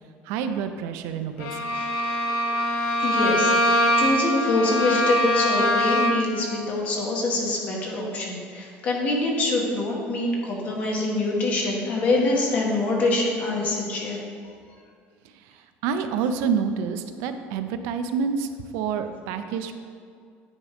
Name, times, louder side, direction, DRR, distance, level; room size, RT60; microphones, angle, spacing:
voice 1, 0.2-1.6 15.4-19.7, right 6 dB, 85° right, 8 dB, 0.5 m, -28 dB
Bowed string instrument, 1.4-6.4, equal, 70° left, 0.7 m, -23 dB
voice 2, 3.0-14.2, left 2 dB, 35° left, -1 dB, 1.2 m, -25 dB
9.4 x 3.5 x 4.9 m, 2.2 s
cardioid pair, 180°, 4 cm